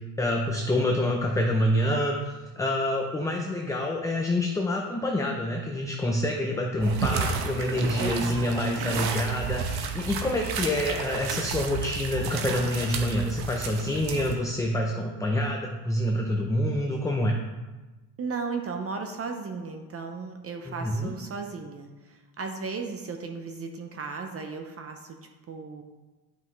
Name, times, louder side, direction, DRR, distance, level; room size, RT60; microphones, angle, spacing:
voice 1, 0.2-17.4 20.7-21.1, left 1 dB, 5° left, 1 dB, 0.4 m, -27 dB
sound 1, 6.8-14.4, right 5 dB, 55° right, 1.1 m, -32 dB
voice 2, 8.0-8.9 18.2-25.2 25.5-25.8, right 4 dB, 30° right, 4 dB, 0.7 m, -36 dB
11.5 x 5.5 x 3.1 m, 1.2 s
cardioid pair, 135°, 46 cm